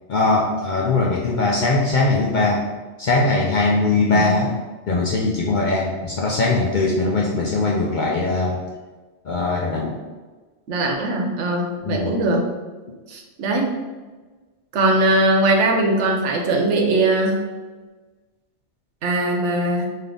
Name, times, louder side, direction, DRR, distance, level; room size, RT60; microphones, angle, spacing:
voice 1, 0.1-2.6 3.0-4.5 4.9-8.6 9.2-10.0 11.8-12.1, left 3 dB, 55° left, -2 dB, 0.5 m, -20 dB
voice 2, 10.7-12.5 13.1-13.7 14.7-17.5 19.0-19.9, right 2 dB, 75° right, 2 dB, 1.0 m, -20 dB
3.4 x 2.8 x 3.7 m, 1.3 s
omnidirectional pair, 1.2 m